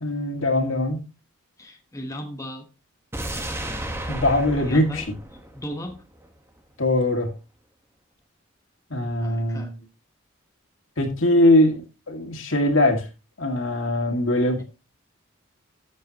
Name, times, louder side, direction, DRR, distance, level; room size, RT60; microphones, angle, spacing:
voice 1, 0.0-1.0 4.1-5.0 6.8-7.3 8.9-9.7 11.0-11.8 12.1-13.1 13.4-14.6, left 1 dB, 70° left, 4 dB, 2.2 m, -21 dB
voice 2, 1.6-2.7 3.6-3.9 4.5-5.1 5.5-6.0 9.2-9.7 14.6-14.7, equal, 15° left, 3 dB, 1.1 m, -36 dB
sound 1, 3.1-6.3 6.6-6.7, right 1 dB, 10° right, 1.4 m, -33 dB
12.5 x 7.6 x 3.0 m, 0.30 s
head